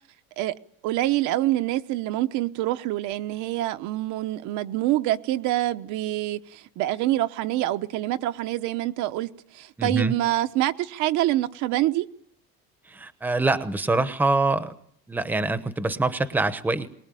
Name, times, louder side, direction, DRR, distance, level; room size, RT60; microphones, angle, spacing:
voice 1, 0.8-12.1, right 15 dB, 60° right, 10 dB, 1.0 m, -26 dB
voice 2, 9.8-10.1 12.9-14.7 15.1-16.9, right 2 dB, 5° right, 11 dB, 0.9 m, -25 dB
23.0 x 20.0 x 9.1 m, 0.67 s
cardioid pair, 175°, 35 cm